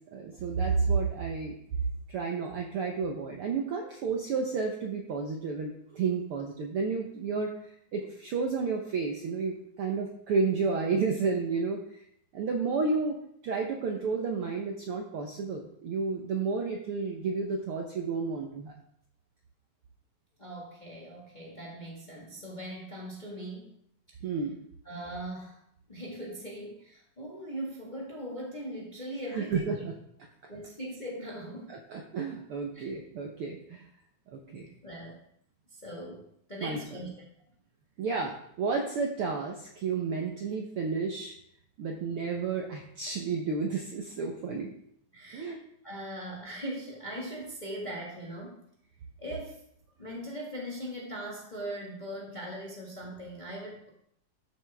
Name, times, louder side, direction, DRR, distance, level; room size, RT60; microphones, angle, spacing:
voice 1, 0.1-1.6 2.1-7.5 7.9-12.0 12.3-13.2 13.4-18.7 24.2-24.6 29.3-29.9 31.7-33.9 34.3-34.7 36.6-36.8 38.0-41.3 41.8-44.7 45.3-45.6, right 4 dB, 65° right, 2 dB, 1.4 m, -31 dB
voice 2, 20.4-23.7 24.8-25.6 25.9-29.8 30.5-31.7 32.7-32.9 34.5-34.6 34.8-35.2 35.7-37.2 45.1-45.6 45.8-48.6 49.2-49.6 50.0-53.9, right 1 dB, 20° left, -2 dB, 1.2 m, -40 dB
13.5 x 7.3 x 3.5 m, 0.71 s
omnidirectional pair, 3.6 m